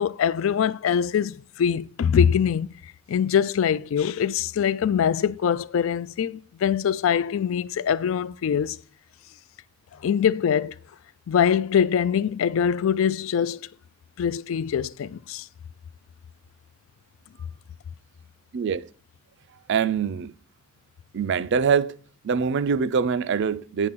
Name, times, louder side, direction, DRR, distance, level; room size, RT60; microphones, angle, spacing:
voice 1, 0.0-2.7 3.1-8.8 10.0-10.8 11.3-13.6 14.2-15.5, left 8 dB, 70° left, 0.3 m, -23 dB
voice 2, 18.5-18.9 19.7-20.3 21.1-22.0 22.2-23.9, right 6 dB, 60° right, 0.4 m, -24 dB
9.1 x 3.7 x 6.0 m
head